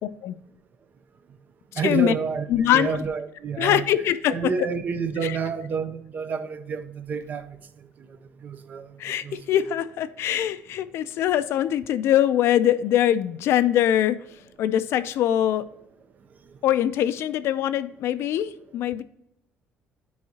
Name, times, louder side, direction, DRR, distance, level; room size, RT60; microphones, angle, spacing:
voice 1, 0.0-0.4 1.7-2.1 2.5-3.0 3.6-4.3 5.2-5.4 9.0-14.2 14.6-15.6 16.6-19.0, left 11 dB, 65° left, 0.5 m, -23 dB
voice 2, 1.8-3.8 4.3-7.6 8.4-8.9 9.2-9.6, right 6 dB, 35° right, 0.6 m, -29 dB
9.4 x 4.7 x 2.8 m
cardioid pair, 145°, 5 cm